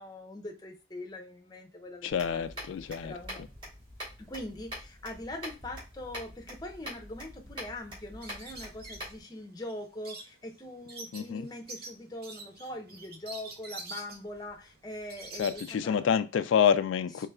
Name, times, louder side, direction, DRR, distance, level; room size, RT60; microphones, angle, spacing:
voice 1, 0.0-2.4 3.0-3.4 4.2-16.0, left 1 dB, 20° left, 2 dB, 0.6 m, -42 dB
voice 2, 2.0-3.1 11.1-11.4 15.4-17.3, left 7 dB, 80° left, 11 dB, 0.3 m, -27 dB
sound 1, 2.1-9.2, equal, 25° right, 2.0 m, -45 dB
sound 2, 8.2-15.7, right 3 dB, 50° right, 0.7 m, -46 dB
4.8 x 3.1 x 2.2 m, 0.30 s
head